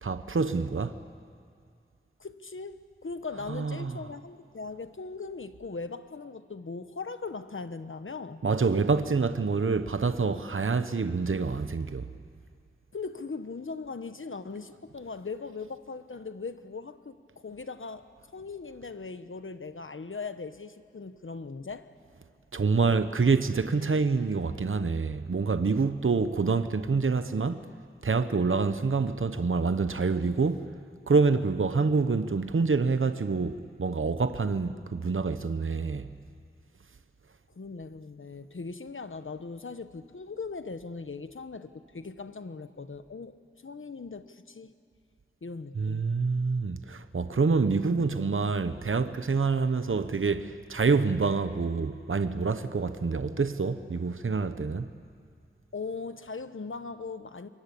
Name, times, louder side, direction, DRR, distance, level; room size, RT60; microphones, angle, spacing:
voice 1, 0.0-1.0 3.5-4.0 8.4-12.1 22.5-27.7 28.0-30.7 31.1-36.1 45.7-54.9, right 4 dB, 80° right, 0.9 m, -27 dB
voice 2, 2.2-8.4 12.9-21.9 31.4-31.5 37.5-43.4 43.6-44.7 45.4-46.1 55.7-57.5, left 4 dB, 75° left, 1.2 m, -39 dB
27.0 x 23.5 x 8.5 m
wide cardioid pair, 60°, 21 cm